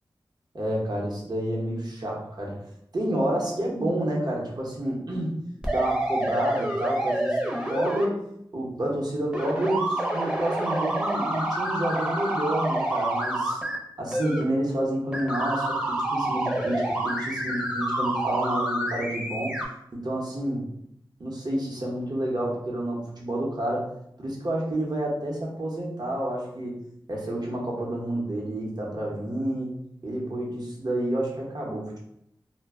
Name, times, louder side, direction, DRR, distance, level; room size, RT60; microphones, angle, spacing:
voice 1, 0.5-2.6 2.9-5.4 5.7-7.4 7.7-8.2 8.5-13.6 14.0-19.6 19.9-20.6 21.2-23.9 24.2-26.7 27.1-29.7 30.0-32.0, right 1 dB, 55° right, -3 dB, 0.8 m, -29 dB
sound 1, 5.6-8.1 9.3-13.8 14.1-14.4 15.1-19.7, right 1 dB, 10° right, 0.6 m, -28 dB
2.1 x 2.0 x 3.4 m, 0.75 s
cardioid pair, 50°, 8 cm